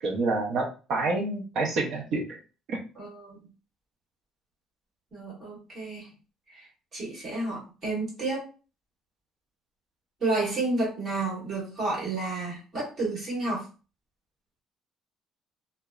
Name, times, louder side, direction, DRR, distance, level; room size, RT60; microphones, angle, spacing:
voice 1, 0.0-2.4 2.7-2.8, right 3 dB, 50° right, 1 dB, 0.6 m, -28 dB
voice 2, 2.9-3.4 5.1-6.1 6.5-6.7 6.9-8.5 10.2-13.7, right 2 dB, 25° right, -6 dB, 1.4 m, -31 dB
2.9 x 2.1 x 2.3 m, 0.34 s
cardioid pair, 175°, 0 cm